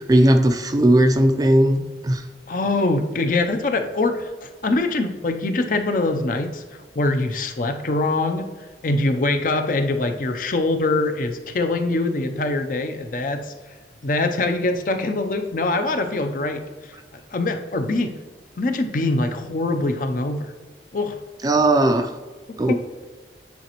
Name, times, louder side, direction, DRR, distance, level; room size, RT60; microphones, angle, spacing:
voice 1, 0.1-2.2 21.4-22.1 22.6-22.7, right 1 dB, 20° right, 6 dB, 0.4 m, -17 dB
voice 2, 2.5-6.6 7.0-8.5 8.8-13.5 14.0-18.1 18.6-20.5 20.9-21.2 22.7-22.8, left 2 dB, 50° left, 6 dB, 0.5 m, -23 dB
9.4 x 4.0 x 3.0 m, 1.4 s
head